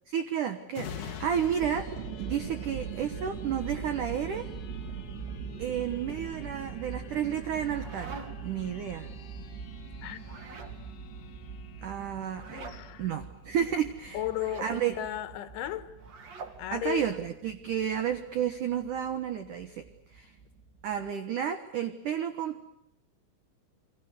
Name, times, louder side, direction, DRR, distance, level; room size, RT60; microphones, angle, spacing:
voice 1, 0.1-1.9 2.2-4.5 5.6-8.2 8.4-9.1 11.8-12.7 13.0-14.3 14.6-15.0 16.7-19.8 20.1-20.3 20.8-22.7, right 9 dB, 85° right, 1.8 m, -31 dB
sound 1, 0.7-14.0 14.5-14.6, left 7 dB, 55° left, 2.6 m, -49 dB
sound 2, 1.4-21.1, right 5 dB, 60° right, 4.3 m, -42 dB
sound 3, 7.5-8.6 10.2-10.8 12.3-12.8 14.3-14.7 16.0-16.6, right 4 dB, 40° right, 2.9 m, -45 dB
voice 2, 12.5-13.1 14.1-15.9 16.6-17.1, left 12 dB, 75° left, 3.6 m, -35 dB
29.5 x 23.0 x 8.1 m
omnidirectional pair, 5.8 m